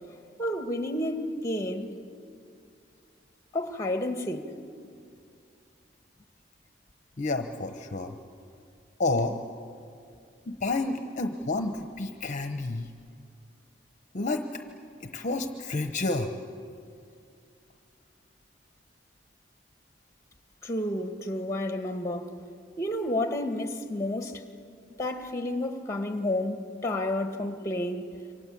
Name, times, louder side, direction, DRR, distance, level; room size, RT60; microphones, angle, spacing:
voice 1, 0.4-1.9 3.5-4.5 20.6-22.3 22.8-24.4 25.0-28.0, left 1 dB, 15° left, 1.7 m, -30 dB
voice 2, 7.2-8.2 9.0-9.4 10.5-12.9 14.1-14.6 15.0-16.3, left 2 dB, 45° left, 1.0 m, -30 dB
27.5 x 24.5 x 8.5 m
head